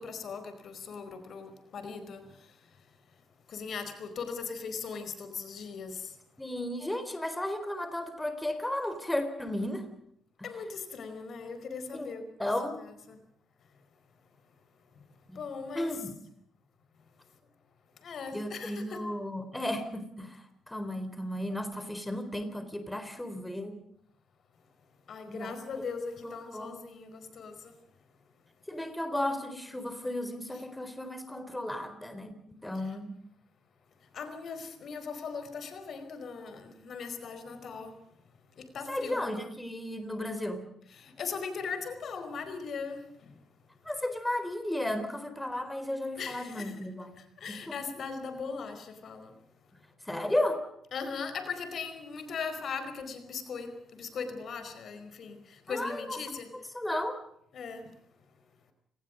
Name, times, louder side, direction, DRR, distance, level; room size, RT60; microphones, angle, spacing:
voice 1, 0.0-2.6 3.5-6.1 10.4-12.2 13.1-13.2 15.3-15.9 18.0-19.1 25.1-27.7 34.1-37.9 38.6-39.2 40.9-43.3 46.2-46.8 47.2-49.3 50.9-56.5 57.5-57.9, left 5 dB, 60° left, 10 dB, 4.6 m, -39 dB
voice 2, 6.4-9.8 10.4-10.5 11.9-12.1 12.4-12.8 15.3-15.4 15.7-16.2 18.3-23.7 25.3-25.8 26.2-26.8 28.7-32.3 32.6-33.1 38.9-40.7 43.8-47.1 47.5-47.8 50.1-50.6 55.7-56.2 56.5-57.2, left 1 dB, 10° left, 9 dB, 4.0 m, -34 dB
29.5 x 19.5 x 5.2 m, 0.72 s
cardioid pair, 90°, 0 cm